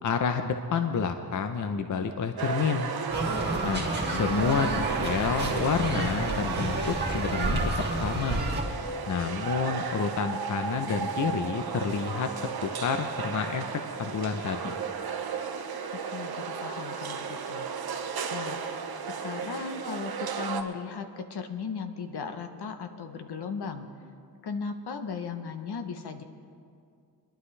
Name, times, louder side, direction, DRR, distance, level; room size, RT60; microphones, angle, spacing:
voice 1, 0.0-2.9 3.6-7.6 7.9-8.4 9.1-12.3 12.6-13.7 14.0-14.7, left 6 dB, 50° left, 7 dB, 0.6 m, -29 dB
sound 1, 2.4-20.6, right 6 dB, 65° right, 0.9 m, -34 dB
sound 2, 3.1-8.6, right 2 dB, 25° right, 1.9 m, -30 dB
voice 2, 4.1-4.9 15.9-17.7 18.3-18.6 19.2-23.9 24.4-26.2, left 5 dB, 75° left, 7 dB, 1.0 m, -36 dB
23.0 x 11.5 x 3.3 m, 2.3 s
wide cardioid pair, 170°, 40 cm